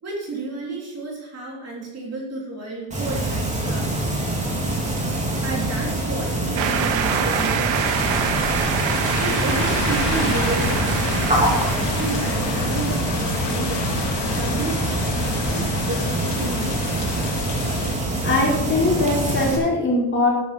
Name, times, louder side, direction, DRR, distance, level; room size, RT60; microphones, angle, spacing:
voice 1, 0.0-3.9 5.4-8.8 9.2-11.4 12.0-13.9 14.3-17.1, right 3 dB, 35° right, -2 dB, 3.6 m, -32 dB
sound 1, 2.9-19.6, right 1 dB, 15° right, 3.7 m, -25 dB
sound 2, 6.6-13.3, right 8 dB, 75° right, 1.7 m, -26 dB
sound 3, 7.7-17.9, left 5 dB, 60° left, 2.5 m, -29 dB
voice 2, 18.2-20.3, left 2 dB, 25° left, -4 dB, 5.3 m, -21 dB
12.5 x 11.5 x 5.2 m, 0.97 s
cardioid pair, 155°, 46 cm